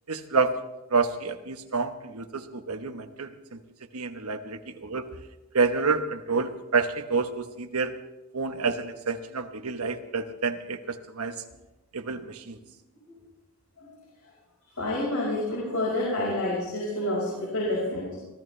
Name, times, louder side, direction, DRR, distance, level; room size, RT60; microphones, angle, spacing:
voice 1, 0.1-0.6 0.9-3.6 3.9-5.1 5.5-8.0 8.3-11.4 11.9-12.6, right 4 dB, 85° right, 8 dB, 1.2 m, -28 dB
voice 2, 14.7-18.2, left 1 dB, 75° left, -5 dB, 5.4 m, -28 dB
25.0 x 17.0 x 3.4 m, 1.0 s
head